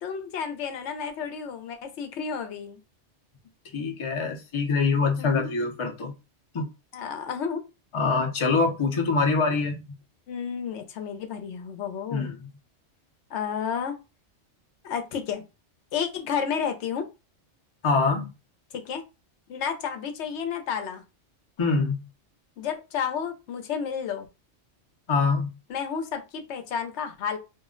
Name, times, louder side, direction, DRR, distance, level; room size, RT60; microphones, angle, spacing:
voice 1, 0.0-2.8 5.2-5.5 6.9-7.6 10.3-12.3 13.3-13.9 14.8-15.4 15.9-17.1 18.7-19.0 19.5-21.0 22.6-24.3 25.7-27.4, left 7 dB, 75° left, 0.9 m, -31 dB
voice 2, 3.7-6.1 6.5-6.7 7.9-9.8 12.1-12.5 17.8-18.3 21.6-22.0 25.1-25.5, left 4 dB, 35° left, 0.5 m, -24 dB
2.4 x 2.0 x 3.6 m
omnidirectional pair, 1.2 m